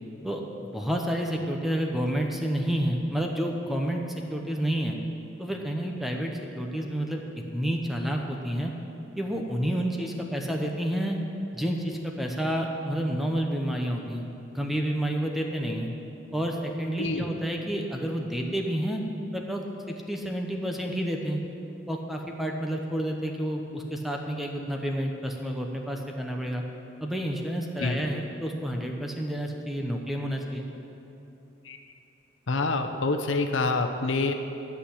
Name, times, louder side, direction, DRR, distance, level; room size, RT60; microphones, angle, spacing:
voice 1, 0.7-4.0 4.3-5.0 5.4-7.2 7.5-8.7 9.2-11.2 11.5-14.3 14.5-15.9 16.3-19.0 19.3-19.6 20.1-21.4 21.9-26.6 27.0-30.7, equal, ahead, 1 dB, 0.9 m, -29 dB
voice 2, 17.0-17.3 27.8-28.0 31.7-31.8 32.5-34.3, left 3 dB, 80° left, 6 dB, 0.8 m, -26 dB
12.5 x 5.9 x 8.5 m, 3.0 s
head